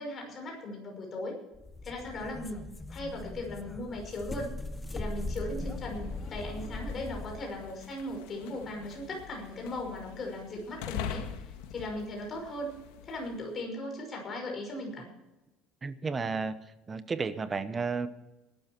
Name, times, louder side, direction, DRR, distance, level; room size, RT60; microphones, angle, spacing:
voice 1, 0.0-1.4 1.8-4.5 4.9-11.2 11.7-12.7 13.0-15.1, left 1 dB, 30° left, 1 dB, 5.6 m, -38 dB
sound 1, 1.5-7.5, left 2 dB, 10° left, 0.9 m, -39 dB
sound 2, 5.7-13.5, left 8 dB, 90° left, 1.7 m, -44 dB
voice 2, 15.8-16.6 16.9-18.1, right 4 dB, 20° right, 13 dB, 0.9 m, -32 dB
19.5 x 12.0 x 4.6 m, 1.0 s
cardioid pair, 150°, 0 cm